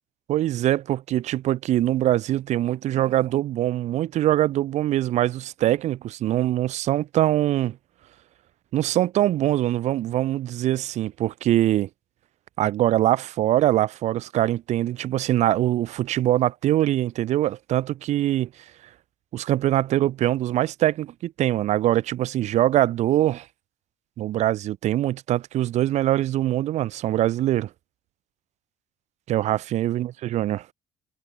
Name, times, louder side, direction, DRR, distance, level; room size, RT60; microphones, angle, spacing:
voice 1, 0.3-7.8 8.7-11.9 12.6-18.5 19.3-23.4 24.2-27.7 29.3-30.7, right 13 dB, 60° right, 0.5 m, -23 dB
hypercardioid pair, 55°, 14 cm